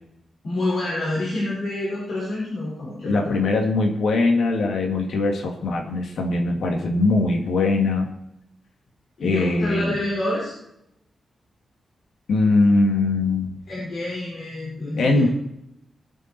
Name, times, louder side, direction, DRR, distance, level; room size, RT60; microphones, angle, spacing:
voice 1, 0.4-3.5 9.2-10.5 13.7-15.3, left 1 dB, 55° left, -6 dB, 5.2 m, -27 dB
voice 2, 3.0-8.1 9.2-9.9 12.3-13.6 15.0-15.3, left 3 dB, 80° left, 2 dB, 2.2 m, -21 dB
21.0 x 7.4 x 4.6 m, 0.81 s
wide cardioid pair, 175°, 0 cm